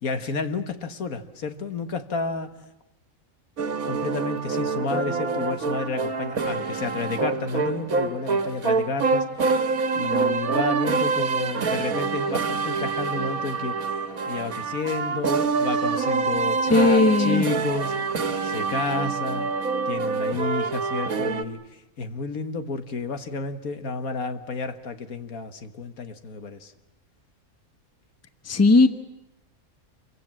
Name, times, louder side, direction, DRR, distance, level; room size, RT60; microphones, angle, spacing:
voice 1, 0.0-2.5 3.9-18.0 18.4-19.5 19.9-26.7, left 4 dB, 80° left, 8 dB, 1.9 m, -31 dB
sound 1, 3.6-21.4, right 4 dB, 75° right, 1.7 m, -26 dB
voice 2, 16.6-17.5 28.4-28.9, left 3 dB, 10° left, 9 dB, 1.0 m, -17 dB
28.0 x 24.0 x 7.5 m, 0.91 s
omnidirectional pair, 1.5 m